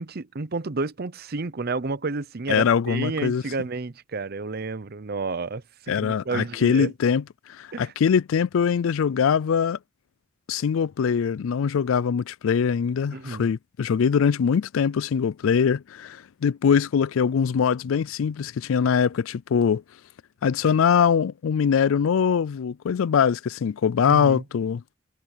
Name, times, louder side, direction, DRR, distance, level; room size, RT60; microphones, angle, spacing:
voice 1, 0.0-5.6 5.9-6.9 7.7-7.9 13.1-13.5 24.0-24.4, right 3 dB, 50° right, 0.7 m, -30 dB
voice 2, 2.5-3.4 5.9-7.2 7.6-9.8 10.5-19.8 20.4-24.8, left 7 dB, 80° left, 0.4 m, -22 dB
head